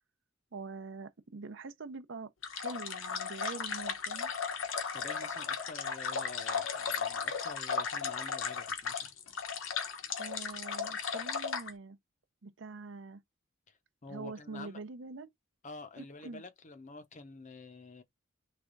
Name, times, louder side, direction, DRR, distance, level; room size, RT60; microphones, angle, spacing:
voice 1, 0.5-4.3 10.2-12.0 12.4-13.2 14.1-15.3 16.0-16.4, right 4 dB, 60° right, 0.6 m, -44 dB
sound 1, 2.4-11.7, left 6 dB, 70° left, 1.0 m, -36 dB
voice 2, 4.9-9.1 13.7-14.8 15.6-18.0, left 3 dB, 35° left, 0.7 m, -48 dB
3.4 x 3.3 x 3.9 m
head